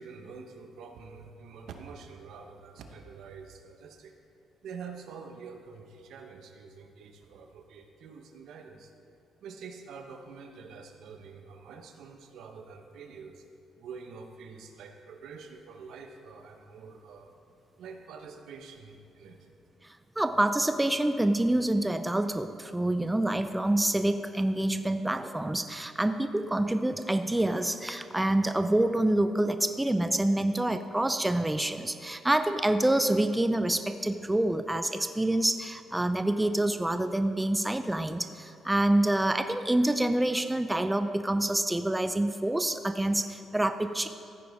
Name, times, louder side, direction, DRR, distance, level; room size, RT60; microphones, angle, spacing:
voice 1, 0.0-4.1 4.6-8.9 9.4-13.4 13.8-17.3 17.8-19.5, right 5 dB, 80° right, 5 dB, 1.0 m, -46 dB
voice 2, 19.8-44.1, right 1 dB, 10° right, 9 dB, 0.4 m, -27 dB
15.0 x 9.3 x 3.6 m, 2.6 s
cardioid pair, 90°, 0 cm